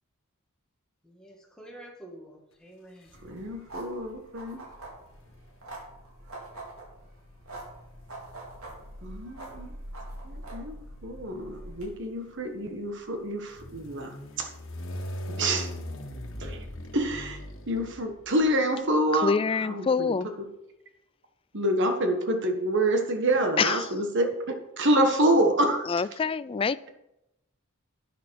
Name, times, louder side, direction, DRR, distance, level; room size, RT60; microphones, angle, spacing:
voice 1, 1.0-3.2, right 1 dB, 5° left, -1 dB, 2.2 m, -48 dB
sound 1, 3.1-3.8 4.8-18.5, equal, 60° left, 1.7 m, -42 dB
sound 2, 3.1-11.9, right 1 dB, 80° right, 4.1 m, -44 dB
voice 2, 3.2-4.6 9.0-9.7 10.2-10.8 11.0-14.1 14.4-14.5 15.4-15.7 16.4-16.6 16.9-17.4 17.7-20.3 21.5-24.3 24.8-25.9, right 1 dB, 55° right, 5 dB, 1.6 m, -27 dB
voice 3, 19.1-20.3 23.6-23.9 25.9-26.9, left 5 dB, 25° left, 17 dB, 0.3 m, -26 dB
11.0 x 10.5 x 4.7 m, 0.88 s
head